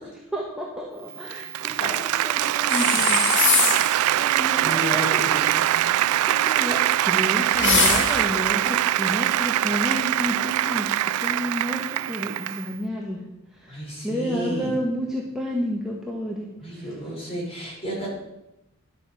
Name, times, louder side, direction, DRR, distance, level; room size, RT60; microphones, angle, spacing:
voice 1, 0.0-5.5 5.8-17.2, equal, ahead, -3 dB, 1.5 m, -31 dB
Applause, 1.1-12.7, right 12 dB, 90° right, 0.3 m, -23 dB
sound 1, 2.7-4.0 7.5-8.4, left 5 dB, 55° left, 1.9 m, -22 dB
voice 2, 4.6-6.0 13.7-14.7 16.6-18.1, equal, 25° left, -4 dB, 5.5 m, -33 dB
11.0 x 8.2 x 7.0 m, 0.90 s
head